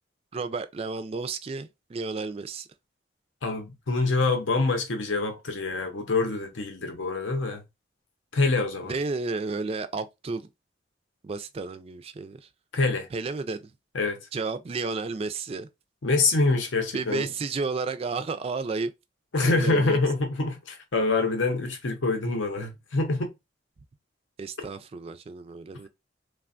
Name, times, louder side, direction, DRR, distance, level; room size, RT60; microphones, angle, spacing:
voice 1, 0.3-2.7 8.8-10.5 11.2-12.5 13.1-13.7 14.3-15.7 16.9-18.9 19.4-20.0 24.4-25.9, right 4 dB, 30° right, 0.3 m, -32 dB
voice 2, 3.4-7.6 8.3-8.9 12.7-13.1 13.9-14.2 16.0-17.2 19.3-23.3, left 3 dB, 80° left, 0.7 m, -25 dB
3.2 x 2.2 x 2.4 m
head